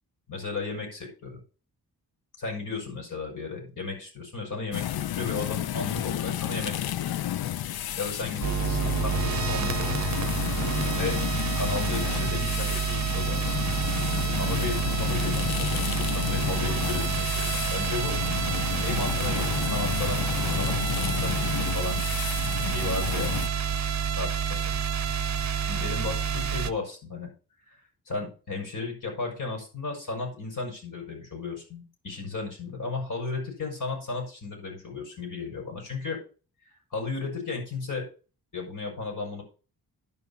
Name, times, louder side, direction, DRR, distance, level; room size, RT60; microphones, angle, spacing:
voice 1, 0.3-1.4 2.4-6.9 8.0-10.0 10.9-11.2 11.5-13.8 14.4-18.2 18.8-22.0 22.3-23.3 24.2-24.8 25.6-27.3 27.7-27.8 28.1-36.2 36.9-38.1 38.5-39.4, left 3 dB, 55° left, 0 dB, 5.9 m, -34 dB
sound 1, 4.7-23.5, left 12 dB, 75° left, 0.5 m, -31 dB
sound 2, 8.4-26.7, right 7 dB, 45° right, 0.7 m, -28 dB
sound 3, 13.3-20.8, right 1 dB, ahead, 1.5 m, -46 dB
11.0 x 5.4 x 5.6 m, 0.35 s
wide cardioid pair, 125°, 38 cm